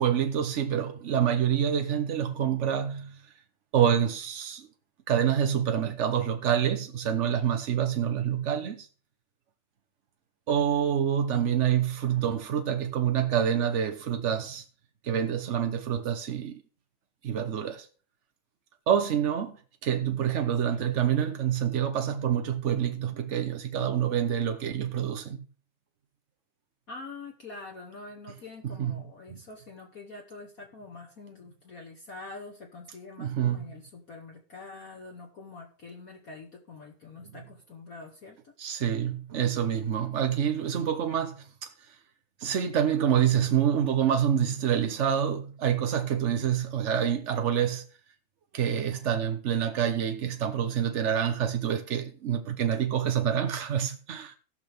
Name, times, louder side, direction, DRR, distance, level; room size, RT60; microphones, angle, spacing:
voice 1, 0.0-3.2 3.7-4.7 5.1-8.9 10.5-14.6 15.0-16.6 17.2-17.9 18.9-25.5 28.8-28.9 29.3-29.4 33.2-33.6 38.6-41.9 42.4-47.8 48.5-54.4, right 9 dB, 80° right, 0.6 m, -27 dB
voice 2, 26.9-38.5, left 3 dB, 50° left, 1.4 m, -45 dB
17.5 x 6.1 x 3.4 m
omnidirectional pair, 2.3 m